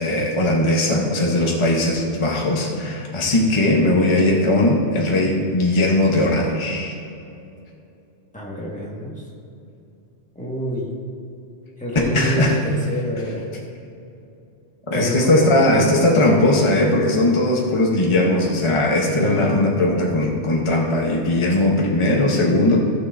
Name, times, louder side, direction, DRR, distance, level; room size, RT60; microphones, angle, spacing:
voice 1, 0.0-7.0 11.9-12.6 14.9-22.8, left 1 dB, 30° left, -1 dB, 0.9 m, -19 dB
voice 2, 8.3-9.2 10.3-10.9 11.8-13.5 14.9-15.5 19.1-19.5, right 1 dB, 5° left, -5 dB, 1.6 m, -27 dB
15.0 x 6.7 x 2.6 m, 2.7 s
omnidirectional pair, 1.1 m